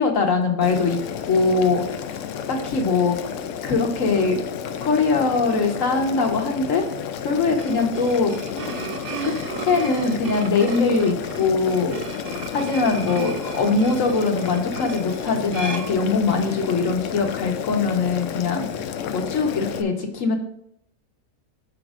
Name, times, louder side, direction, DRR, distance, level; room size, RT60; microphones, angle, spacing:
voice 1, 0.0-3.2 3.6-4.4 4.8-6.9 7.2-8.3 9.2-9.4 9.6-11.9 12.5-18.7 19.1-20.4, left 4 dB, 55° left, 3 dB, 1.4 m, -22 dB
Boiling, 0.6-19.8, left 8 dB, 70° left, 0.7 m, -32 dB
sound 1, 7.4-16.7, right 5 dB, 65° right, 0.5 m, -35 dB
12.5 x 4.5 x 2.5 m, 0.73 s
omnidirectional pair, 1.7 m